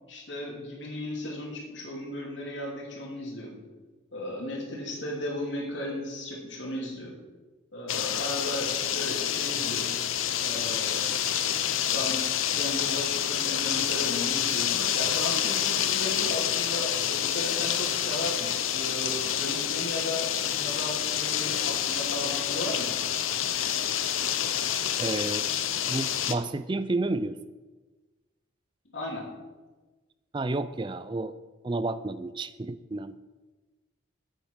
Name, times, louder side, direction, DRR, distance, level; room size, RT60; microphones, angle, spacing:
voice 1, 0.1-3.6 4.1-7.2 7.7-10.0 10.4-11.0 11.9-12.2 12.5-22.9 28.9-29.3, left 1 dB, 65° left, -3 dB, 2.8 m, -35 dB
sound 1, 7.9-26.4, left 10 dB, 90° left, 0.8 m, -28 dB
voice 2, 25.0-25.5 25.9-27.4 30.3-31.3 31.6-33.2, right 2 dB, 25° right, 13 dB, 0.4 m, -30 dB
9.1 x 8.3 x 6.3 m, 1.2 s
head